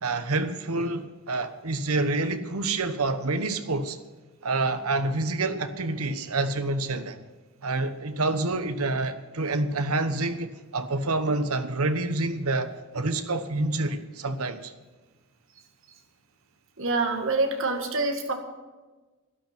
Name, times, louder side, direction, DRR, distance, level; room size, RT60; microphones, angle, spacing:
voice 1, 0.0-4.0 4.4-7.2 7.6-14.7, right 2 dB, 85° right, 1.1 m, -27 dB
voice 2, 16.8-18.3, right 3 dB, 65° right, 1.9 m, -26 dB
12.5 x 12.0 x 6.0 m
head